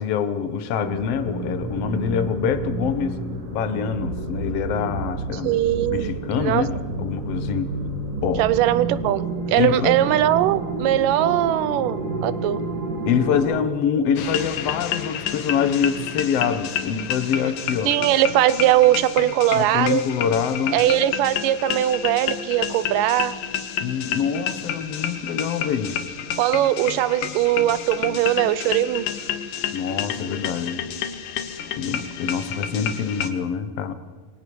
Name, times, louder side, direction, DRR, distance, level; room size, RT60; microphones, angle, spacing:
voice 1, 0.0-3.2 3.5-5.5 5.9-7.8 8.2-8.5 9.6-10.0 13.1-17.9 19.5-20.8 23.8-26.0 29.7-30.9 31.8-33.9, left 7 dB, 60° left, 10 dB, 1.8 m, -25 dB
sound 1, 0.8-13.6, right 2 dB, 60° right, 4.4 m, -30 dB
voice 2, 5.4-6.6 8.4-12.6 17.9-20.0 20.7-23.3 26.4-29.1, right 13 dB, 80° right, 15 dB, 2.4 m, -20 dB
sound 2, 14.2-33.3, left 8 dB, 80° left, 2.9 m, -30 dB
27.0 x 23.5 x 4.8 m, 1.5 s
omnidirectional pair, 3.9 m